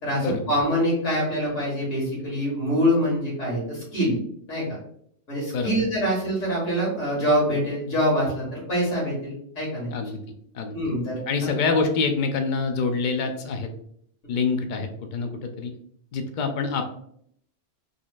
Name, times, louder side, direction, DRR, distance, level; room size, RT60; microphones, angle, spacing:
voice 1, 0.0-4.1 4.5-4.6 5.3-9.9 10.7-11.8, equal, 85° left, -4 dB, 2.0 m, -25 dB
voice 2, 9.9-10.2 10.5-10.8 11.3-13.7 14.3-15.7 16.1-17.0, left 4 dB, 60° left, 6 dB, 0.5 m, -26 dB
4.0 x 3.1 x 2.4 m, 0.69 s
omnidirectional pair, 1.3 m